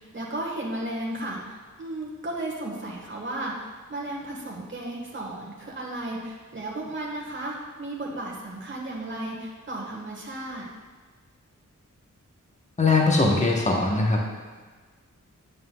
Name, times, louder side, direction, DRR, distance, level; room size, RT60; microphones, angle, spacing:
voice 1, 0.0-10.7, right 1 dB, 40° right, -3 dB, 1.3 m, -34 dB
voice 2, 12.8-14.2, left 3 dB, 20° left, -1 dB, 0.9 m, -21 dB
7.8 x 7.7 x 2.2 m, 1.4 s
wide cardioid pair, 70°, 32 cm